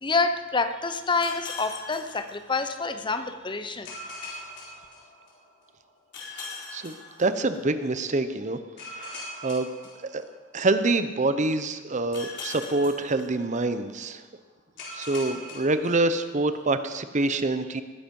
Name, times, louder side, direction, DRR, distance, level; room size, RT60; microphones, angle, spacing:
voice 1, 0.0-3.9, left 3 dB, 25° left, 9 dB, 0.8 m, -27 dB
sound 1, 1.2-3.0 3.9-5.6 6.1-7.9 8.8-10.8 12.1-13.9 14.8-16.6, left 2 dB, 60° left, 4.3 m, -41 dB
voice 2, 7.2-8.6 8.9-9.7 10.1-10.2 10.5-14.2 14.9-17.8, right 2 dB, 35° right, 11 dB, 0.7 m, -26 dB
19.5 x 9.9 x 5.4 m, 1.4 s
head